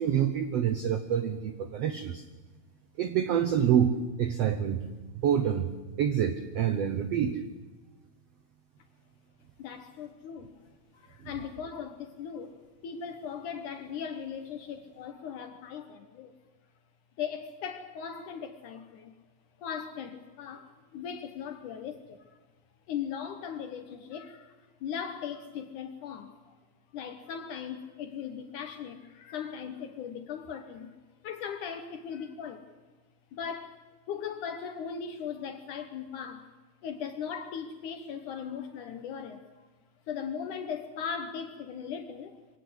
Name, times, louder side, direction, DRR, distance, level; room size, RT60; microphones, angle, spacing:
voice 1, 0.0-2.2 3.0-4.8 5.2-5.7 6.0-7.4, right 9 dB, 80° right, 9 dB, 1.4 m, -27 dB
voice 2, 9.6-10.5 10.9-16.3 17.2-19.2 19.6-22.3 22.9-26.5 26.9-31.0 31.2-32.6 33.3-33.8 34.1-36.5 36.8-39.7 40.1-42.4, left 7 dB, 65° left, 8 dB, 2.3 m, -38 dB
23.5 x 17.5 x 8.0 m, 1.3 s
omnidirectional pair, 4.2 m